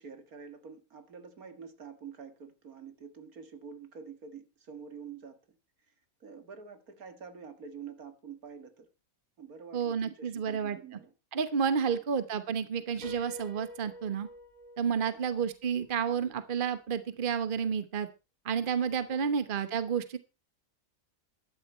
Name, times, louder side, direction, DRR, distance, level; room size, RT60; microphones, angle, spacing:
voice 1, 0.0-5.6 6.2-8.9 9.4-11.1 15.0-15.2 19.1-19.4, right 6 dB, 80° right, 2.3 m, -47 dB
voice 2, 9.7-10.8 11.3-14.3 14.8-18.1 18.4-20.2, right 7 dB, 40° right, 1.2 m, -30 dB
Piano, 13.0-16.8, equal, 65° right, 4.7 m, -49 dB
13.5 x 10.5 x 4.4 m
omnidirectional pair, 1.5 m